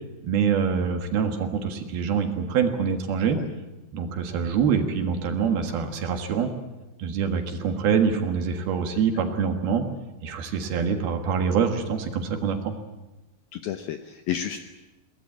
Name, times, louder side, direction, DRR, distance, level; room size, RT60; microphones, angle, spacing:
voice 1, 0.2-3.4 3.9-6.5 7.0-9.8 10.2-12.7, right 6 dB, 65° right, 5 dB, 3.3 m, -25 dB
voice 2, 13.5-14.6, left 10 dB, 75° left, 7 dB, 2.2 m, -31 dB
23.0 x 19.5 x 8.6 m, 1.1 s
omnidirectional pair, 5.3 m